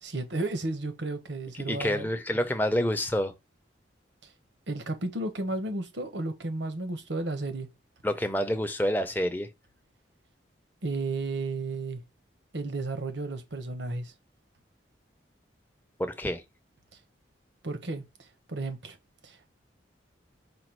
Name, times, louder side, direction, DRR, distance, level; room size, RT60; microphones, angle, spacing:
voice 1, 0.0-2.1 4.7-7.7 10.8-12.0 12.5-14.1 17.6-18.0 18.5-19.0 19.2-19.5, right 2 dB, 75° right, 1.0 m, -33 dB
voice 2, 1.7-3.3 8.0-9.5 16.0-16.4, equal, 10° left, 0.6 m, -28 dB
5.1 x 2.3 x 4.5 m
head